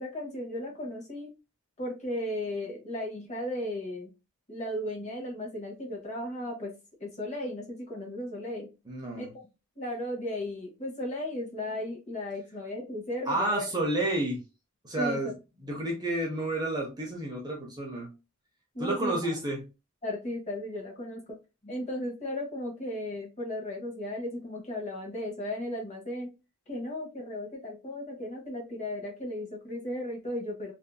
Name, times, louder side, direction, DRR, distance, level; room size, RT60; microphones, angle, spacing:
voice 1, 0.0-1.3 1.8-4.1 4.5-6.7 7.0-8.7 9.2-9.3 9.8-13.7 15.0-15.3 18.7-19.4 20.0-21.4 21.6-26.3 26.7-30.7, left 1 dB, 30° left, -2 dB, 0.9 m, -35 dB
voice 2, 8.9-9.3 13.3-14.4 14.8-15.3 15.6-18.1 18.8-19.6, right 1 dB, 20° right, -1 dB, 0.6 m, -30 dB
2.6 x 2.4 x 2.2 m, 0.28 s
head